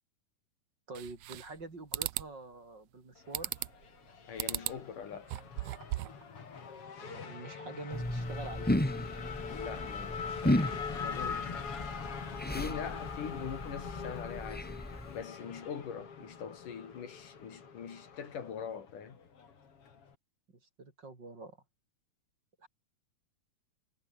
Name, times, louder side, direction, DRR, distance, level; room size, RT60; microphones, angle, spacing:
voice 1, 0.9-3.5 7.0-8.7 20.8-21.6 22.6-22.7, right 3 dB, 35° right, 4.5 m, -46 dB
sound 1, 1.0-1.6 1.9-2.3 3.3-3.9 4.4-4.8 5.2-6.2, right 18 dB, 90° right, 1.4 m, -36 dB
Race car auto racing / Accelerating revving vroom, 3.2-20.2, left 6 dB, 45° left, 3.6 m, -43 dB
voice 2, 4.3-5.4 9.4-11.7 12.5-14.7 15.1-19.2, left 7 dB, 80° left, 4.6 m, -43 dB
sound 2, 7.9-15.2, left 1 dB, 5° left, 0.8 m, -35 dB
omnidirectional pair, 3.6 m